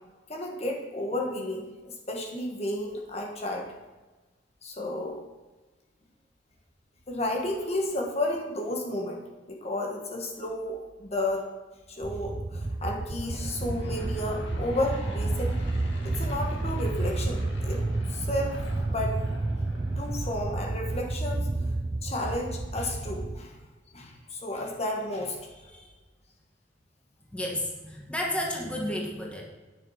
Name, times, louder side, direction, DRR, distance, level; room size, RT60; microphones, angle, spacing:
voice 1, 0.3-3.7 4.6-5.2 7.1-9.2 9.5-11.5 11.9-15.6 16.0-18.6 18.9-19.2 20.0-21.5 22.0-23.5 23.9-25.4, left 1 dB, 35° left, 1 dB, 1.5 m, -32 dB
sound 1, 12.0-23.4, right 2 dB, 20° right, 0.3 m, -31 dB
Aircraft / Engine, 13.0-21.0, left 1 dB, 80° left, 2.3 m, -45 dB
voice 2, 27.3-29.5, left 1 dB, 5° left, -1 dB, 1.5 m, -32 dB
9.9 x 7.2 x 5.7 m, 1.2 s
head